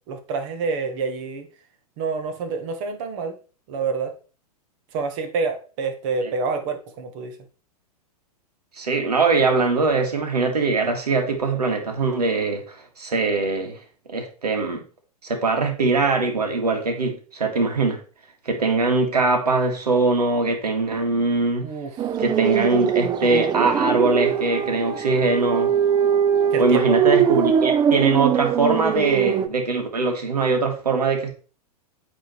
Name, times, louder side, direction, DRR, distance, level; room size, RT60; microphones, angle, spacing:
voice 1, 0.1-1.5 2.0-3.4 3.7-4.1 4.9-7.4 21.6-21.9 26.5-27.0, right 4 dB, 50° right, 1.8 m, -27 dB
voice 2, 8.8-13.8 14.1-14.8 15.2-18.0 18.5-21.7 22.2-25.7 26.6-31.3, right 3 dB, 80° right, 2.4 m, -22 dB
sound 1, 22.0-29.5, right 8 dB, 20° right, 0.5 m, -21 dB
9.2 x 4.2 x 4.7 m
hypercardioid pair, 105°, 20 cm